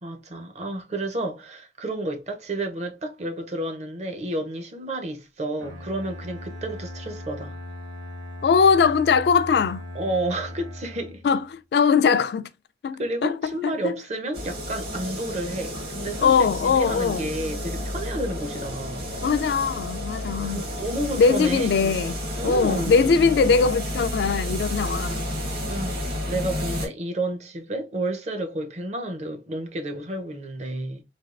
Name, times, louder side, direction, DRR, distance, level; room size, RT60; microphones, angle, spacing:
voice 1, 0.0-7.6 9.9-11.2 13.0-19.1 20.4-22.0 22.4-23.0 25.7-26.0 26.3-31.0, right 1 dB, 40° right, 0.6 m, -31 dB
Bowed string instrument, 5.6-11.5, left 1 dB, 90° right, 1.4 m, -38 dB
voice 2, 8.4-9.8 11.2-12.5 12.8-13.5 13.8-13.9 16.2-17.3 19.2-20.6 21.2-22.2 22.4-25.3, left 5 dB, 65° left, 0.3 m, -21 dB
sound 1, 14.3-26.9, equal, 60° right, 1.2 m, -31 dB
3.3 x 2.3 x 2.3 m
head